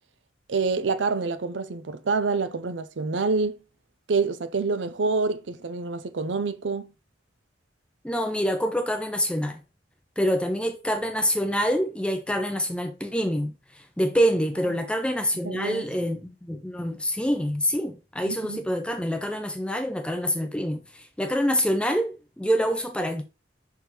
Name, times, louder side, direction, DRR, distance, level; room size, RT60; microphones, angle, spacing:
voice 1, 0.5-3.6 4.1-6.9 14.7-14.8 15.4-16.1 18.3-18.6, right 4 dB, 85° right, 0.6 m, -27 dB
voice 2, 8.0-9.6 10.2-23.2, equal, 5° left, 0.5 m, -26 dB
6.0 x 3.5 x 4.4 m
head